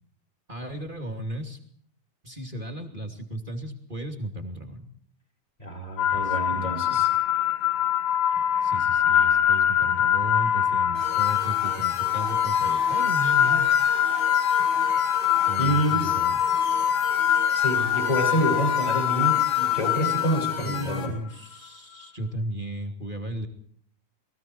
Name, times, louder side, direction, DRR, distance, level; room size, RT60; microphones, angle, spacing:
voice 1, 0.5-1.6 2.2-4.9 6.1-7.0 8.6-13.8 15.5-16.4 20.6-23.5, right 1 dB, 15° right, 5 dB, 2.2 m, -35 dB
voice 2, 5.6-7.1 15.6-16.1 17.5-21.1, right 1 dB, 10° left, 5 dB, 5.9 m, -27 dB
sound 1, 6.0-21.1, left 9 dB, 90° left, 3.3 m, -23 dB
sound 2, 10.9-21.1, left 1 dB, 35° left, 6.4 m, -38 dB
29.5 x 21.5 x 4.6 m, 0.62 s
omnidirectional pair, 4.4 m